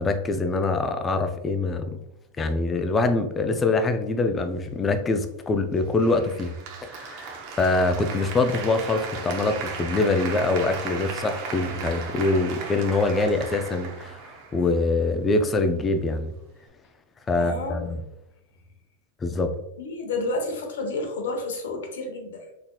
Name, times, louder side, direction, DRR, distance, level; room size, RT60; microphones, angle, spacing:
voice 1, 0.0-2.0 2.4-6.5 6.8-16.3 17.3-18.0 19.2-19.5, left 3 dB, 15° left, 7 dB, 0.3 m, -24 dB
Applause, 6.0-15.0, right 5 dB, 45° right, 0.6 m, -36 dB
voice 2, 17.3-17.9 19.8-22.5, left 2 dB, 90° left, 3 dB, 0.9 m, -30 dB
4.1 x 2.7 x 2.2 m, 0.86 s
supercardioid pair, 150°, 0 cm